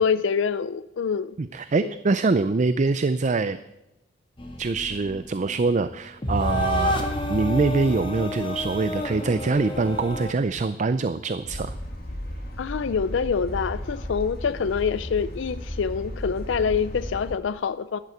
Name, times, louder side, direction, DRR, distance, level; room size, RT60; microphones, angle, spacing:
voice 1, 0.0-1.4 1.8-1.9 12.6-18.0, left 6 dB, 70° left, 14 dB, 0.4 m, -26 dB
voice 2, 1.4-3.6 4.6-11.7, right 3 dB, 40° right, 13 dB, 0.4 m, -24 dB
sound 1, 4.4-10.3, left 1 dB, 25° left, 1.7 m, -29 dB
sound 2, 11.4-17.3, equal, 55° left, 2.4 m, -34 dB
11.0 x 11.0 x 7.8 m, 0.95 s
head